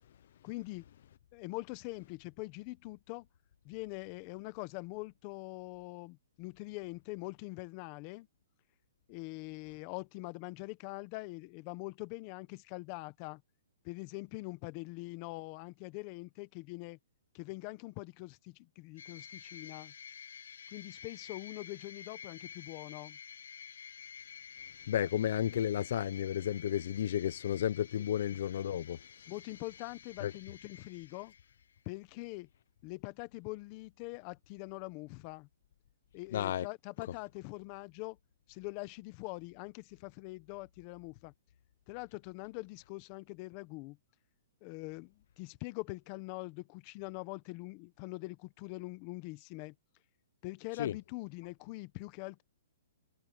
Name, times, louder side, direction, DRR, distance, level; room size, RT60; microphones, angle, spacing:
voice 1, 0.4-0.9 1.3-3.3 3.6-8.3 9.1-13.4 13.8-17.0 17.3-19.9 20.7-23.2 27.9-28.0 29.3-31.3 31.9-32.5 32.8-35.5 36.1-38.2 38.5-41.3 41.9-44.0 44.6-49.7 50.4-52.4, left 23 dB, 25° left, 0.9 m, -43 dB
sound 1, 19.0-31.8, left 7 dB, 75° left, 1.5 m, -51 dB
voice 2, 24.9-29.0 30.2-30.3 36.3-36.7 50.8-50.9, left 10 dB, 50° left, 0.7 m, -32 dB
hypercardioid pair, 170°, 0 cm